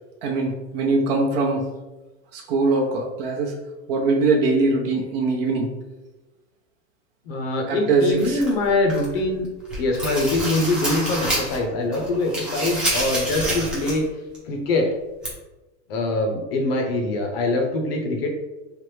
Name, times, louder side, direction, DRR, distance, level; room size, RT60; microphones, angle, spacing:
voice 1, 0.2-1.6 2.3-3.5 3.9-5.7 7.7-8.4, right 3 dB, 50° right, 0 dB, 0.6 m, -22 dB
voice 2, 7.3-9.5 9.8-14.1 14.5-14.9 15.9-18.3, left 2 dB, 55° left, 2 dB, 0.7 m, -23 dB
sound 1, 8.2-9.2 9.6-11.6 11.9-14.1 14.3-14.4 15.2-15.3, right 1 dB, 5° right, 0.5 m, -27 dB
3.3 x 2.0 x 3.1 m, 1.1 s
supercardioid pair, 150°, 37 cm